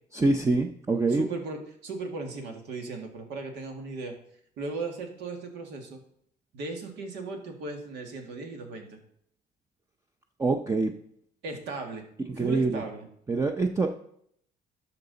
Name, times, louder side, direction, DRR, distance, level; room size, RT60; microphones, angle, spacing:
voice 1, 0.1-1.3 10.4-10.9 12.4-12.8 13.3-13.9, right 3 dB, 15° right, 5 dB, 0.6 m, -25 dB
voice 2, 1.1-4.2 4.6-6.0 6.5-9.0 11.4-12.0 12.4-13.1, right 3 dB, 85° right, 3 dB, 2.0 m, -37 dB
12.5 x 5.7 x 4.0 m, 0.69 s
cardioid pair, 110°, 17 cm